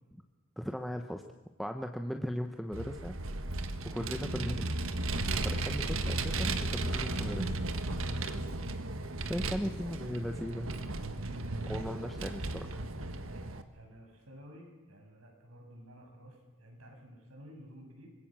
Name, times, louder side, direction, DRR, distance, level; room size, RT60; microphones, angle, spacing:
voice 1, 0.6-1.2 1.6-3.2 3.8-4.8 5.2-7.5 9.3-10.7 11.7-12.8, equal, ahead, 4 dB, 0.9 m, -37 dB
Vehicle, 2.7-13.6, right 2 dB, 75° right, 1.6 m, -35 dB
voice 2, 9.4-9.7 11.2-12.5 13.7-18.1, equal, 90° right, 2 dB, 7.0 m, -53 dB
25.0 x 21.0 x 7.5 m, 1.2 s
head